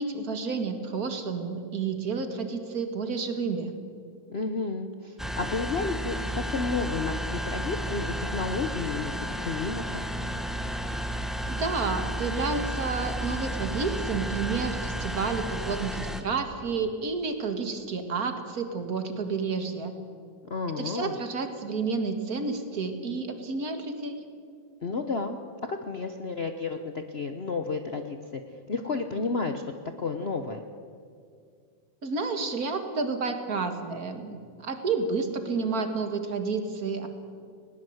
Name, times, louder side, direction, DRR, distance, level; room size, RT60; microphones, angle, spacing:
voice 1, 0.0-3.7 11.5-19.9 20.8-24.2 32.0-37.1, right 4 dB, 50° right, 7 dB, 2.3 m, -30 dB
voice 2, 4.3-10.0 20.5-21.1 24.8-25.4 25.7-28.4 28.7-29.7 30.0-30.6, left 4 dB, 45° left, 6 dB, 1.0 m, -31 dB
sound 1, 5.2-16.2, equal, ahead, 1.0 m, -32 dB
20.0 x 18.5 x 8.0 m, 2.2 s
omnidirectional pair, 2.0 m